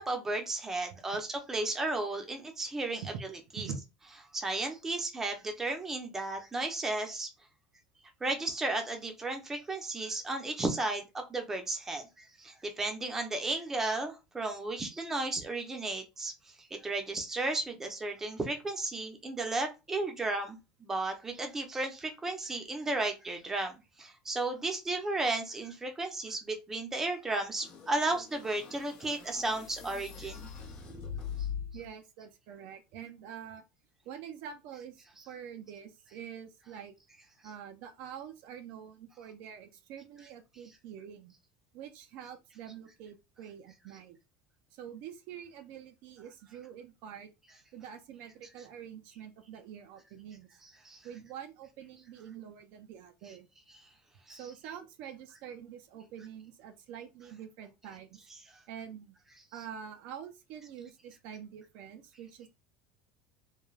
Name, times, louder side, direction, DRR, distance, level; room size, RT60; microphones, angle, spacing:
voice 1, 0.0-3.0 3.5-3.7 4.3-7.3 8.2-30.5 50.6-51.0 54.3-54.5, right 2 dB, 15° right, 0.6 m, -34 dB
sound 1, 27.6-31.9, left 7 dB, 40° left, 0.9 m, -42 dB
voice 2, 31.7-33.7 34.1-36.9 37.4-41.3 41.7-44.2 44.7-47.3 47.7-50.5 51.0-53.5 54.3-58.2 58.7-59.1 59.5-62.5, right 8 dB, 60° right, 0.4 m, -46 dB
3.1 x 2.2 x 2.3 m
cardioid pair, 145°, 3 cm